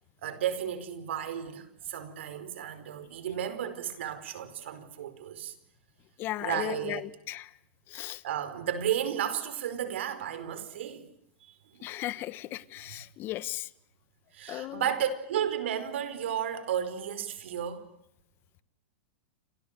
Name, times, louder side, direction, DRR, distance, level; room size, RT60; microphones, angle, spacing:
voice 1, 0.2-5.5 6.4-7.1 8.2-11.1 11.7-11.8 14.3-17.8, right 9 dB, 75° right, 4.9 m, -33 dB
voice 2, 6.2-7.5 7.9-8.2 11.8-13.7 14.5-14.9, left 15 dB, 35° left, 1.2 m, -36 dB
29.5 x 27.5 x 6.8 m
hypercardioid pair, 135°, 6 cm